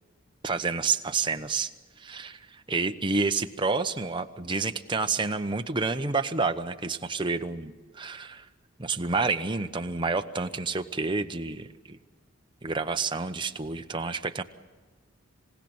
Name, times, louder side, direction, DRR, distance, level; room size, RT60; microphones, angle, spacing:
voice 1, 0.4-1.7 2.0-2.4 2.7-8.4 8.8-12.0 12.6-14.4, right 4 dB, 25° right, 7 dB, 0.9 m, -29 dB
27.0 x 17.0 x 8.8 m, 1.4 s
head